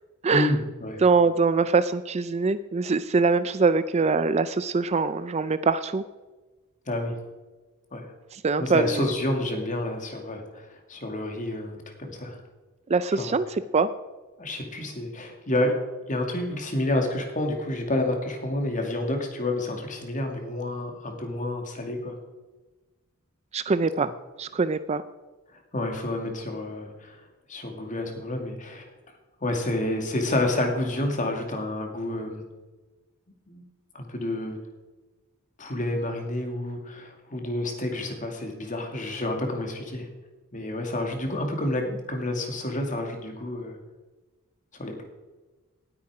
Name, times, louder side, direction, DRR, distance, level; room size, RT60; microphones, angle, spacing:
voice 1, 0.3-1.0 6.9-7.1 7.9-8.0 8.6-12.4 13.2-13.3 14.4-15.8 16.1-22.2 24.0-24.1 25.7-27.2 27.5-28.9 29.4-32.4 33.5-33.6 33.9-34.6 35.6-40.1 40.5-43.8 44.8-45.0, left 1 dB, 35° left, 3 dB, 2.3 m, -29 dB
voice 2, 1.0-6.0 8.3-9.1 12.9-13.9 23.5-24.1 24.4-25.0, right 4 dB, 30° right, 14 dB, 0.4 m, -23 dB
19.0 x 8.6 x 4.9 m, 1.2 s
head